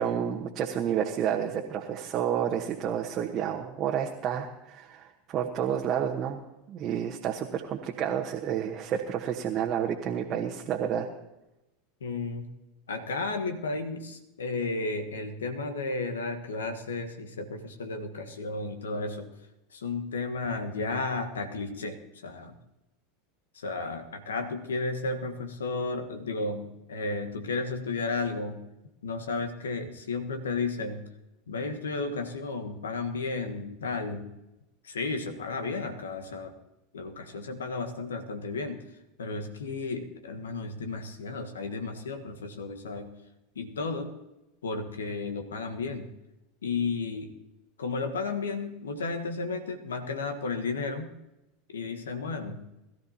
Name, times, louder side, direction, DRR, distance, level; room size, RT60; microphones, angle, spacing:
voice 1, 0.0-6.4 6.7-11.1, right 9 dB, 40° right, 0 dB, 1.2 m, -30 dB
voice 2, 12.0-12.5 12.9-19.3 19.7-22.0 22.2-22.6 23.5-28.6 29.0-31.0 31.5-34.3 34.8-36.5 36.9-38.8 39.2-43.1 43.5-44.1 44.6-46.1 46.6-47.3 47.8-51.1 51.7-52.6, left 3 dB, 80° left, 7 dB, 1.4 m, -33 dB
21.5 x 13.0 x 2.9 m, 0.94 s
hypercardioid pair, 80°, 0 cm